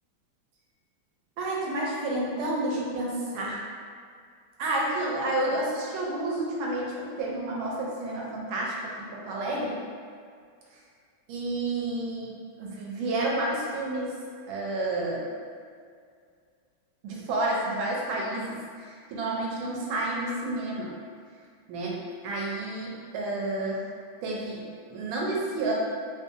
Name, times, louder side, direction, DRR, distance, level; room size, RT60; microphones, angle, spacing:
voice 1, 1.4-3.6 4.6-9.8 11.3-12.3 12.6-14.1 14.5-15.3 17.0-20.9 21.7-23.8 24.2-25.7, right 2 dB, 80° right, -3 dB, 1.4 m, -30 dB
3.5 x 2.6 x 2.6 m, 2.2 s
omnidirectional pair, 2.2 m